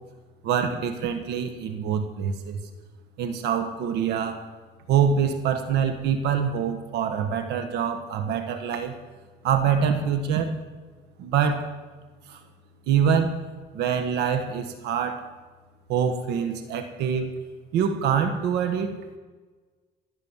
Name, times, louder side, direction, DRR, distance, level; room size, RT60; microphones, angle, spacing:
voice 1, 0.4-2.6 3.2-4.4 4.9-9.0 9.4-10.5 11.2-11.7 12.3-12.4 12.9-13.4 13.7-15.3 15.9-17.3 17.7-19.0, right 7 dB, 85° right, 7 dB, 1.5 m, -25 dB
16.0 x 9.8 x 7.3 m, 1.3 s
cardioid pair, 110°, 17 cm